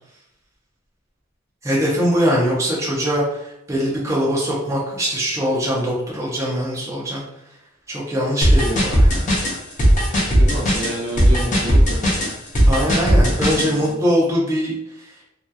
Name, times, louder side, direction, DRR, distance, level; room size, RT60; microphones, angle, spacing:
voice 1, 1.6-7.2 7.9-9.3 12.7-14.7, equal, 15° right, -5 dB, 0.6 m, -22 dB
sound 1, 8.4-13.7, equal, 40° left, 0.7 m, -16 dB
voice 2, 10.3-12.3 13.2-14.0, equal, 75° right, -2 dB, 0.8 m, -30 dB
2.7 x 2.2 x 2.2 m, 0.82 s
head